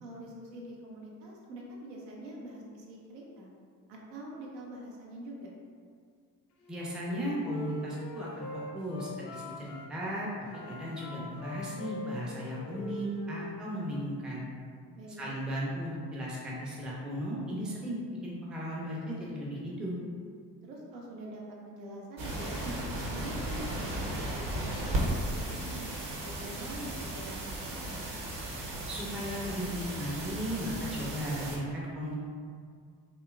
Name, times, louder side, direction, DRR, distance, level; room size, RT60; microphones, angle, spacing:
voice 1, 0.0-3.5 3.9-5.5 15.0-15.2 20.6-25.8 26.2-28.0, right 1 dB, 80° right, -3 dB, 0.6 m, -45 dB
Wind instrument woodwind instrument, 6.6-9.9 10.4-14.0, left 2 dB, 55° left, 0.5 m, -43 dB
voice 2, 6.7-8.5 8.7-10.3 10.7-14.4 15.2-20.0 28.9-32.2, equal, ahead, -5 dB, 0.4 m, -36 dB
sound 1, 22.2-31.6, right 1 dB, 45° right, 0.7 m, -35 dB
2.8 x 2.1 x 2.2 m, 2.1 s
figure-of-eight pair, 45°, 49 cm